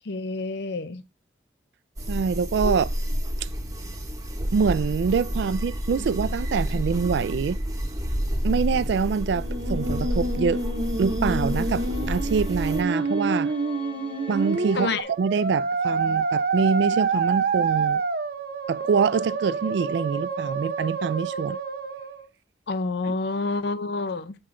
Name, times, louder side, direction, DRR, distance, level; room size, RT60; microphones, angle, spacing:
voice 1, 0.1-1.0 2.6-2.8 14.8-15.1 22.7-24.4, left 3 dB, 65° left, 0.5 m, -28 dB
sound 1, 2.0-12.8, equal, 20° right, 0.9 m, -29 dB
voice 2, 2.1-2.9 3.4-3.5 4.5-7.6 8.4-10.6 11.0-13.5 14.3-18.0 18.7-21.6 23.0-23.2, right 5 dB, 70° right, 0.3 m, -25 dB
sound 2, 9.1-15.0, left 4 dB, 30° left, 1.0 m, -45 dB
Musical instrument, 9.3-22.3, right 4 dB, 55° right, 0.8 m, -27 dB
7.6 x 4.8 x 3.7 m
head